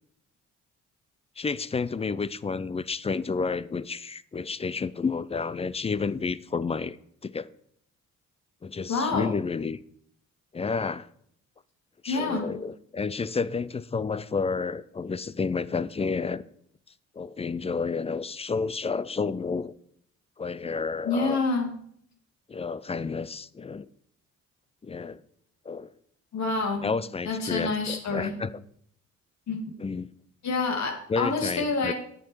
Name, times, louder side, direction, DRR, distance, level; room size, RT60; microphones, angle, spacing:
voice 1, 1.4-7.0 7.2-7.5 8.6-9.8 10.5-11.1 12.0-16.4 17.2-19.7 20.4-21.4 22.5-23.9 24.8-25.2 25.7-25.9 26.8-28.6 29.8-30.1 31.1-31.9, left 4 dB, 20° left, 0.4 m, -30 dB
voice 2, 8.9-9.3 12.1-12.5 21.0-21.7 26.3-26.9 27.3-28.4 29.5-29.6 30.4-31.9, left 3 dB, 65° left, 2.4 m, -27 dB
10.0 x 8.6 x 4.6 m
cardioid pair, 90°, 30 cm